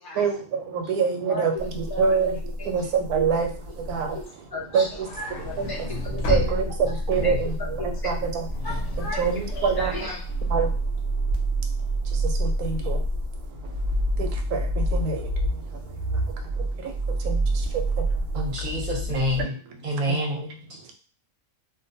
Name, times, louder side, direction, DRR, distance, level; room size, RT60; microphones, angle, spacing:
voice 1, 0.1-4.3 4.7-5.1 5.6-5.7 6.1-8.7 9.2-9.9 10.5-18.9 19.4-20.9, right 5 dB, 85° right, 4 dB, 1.1 m, -28 dB
sound 1, 1.6-4.2 5.4-19.4, right 1 dB, 70° right, 0.5 m, -28 dB
voice 2, 1.9-2.2 2.6-2.9 3.8-4.2 4.5-4.9 5.2-6.4 6.6-6.7 7.2-7.3 7.8-7.9 8.6-10.2, left 2 dB, 25° left, -3 dB, 0.5 m, -36 dB
sound 2, 4.8-11.1, left 2 dB, 65° left, 0.8 m, -34 dB
voice 3, 18.3-19.5 19.8-20.5, equal, 40° right, -2 dB, 0.7 m, -27 dB
2.5 x 2.2 x 2.6 m, 0.39 s
omnidirectional pair, 1.5 m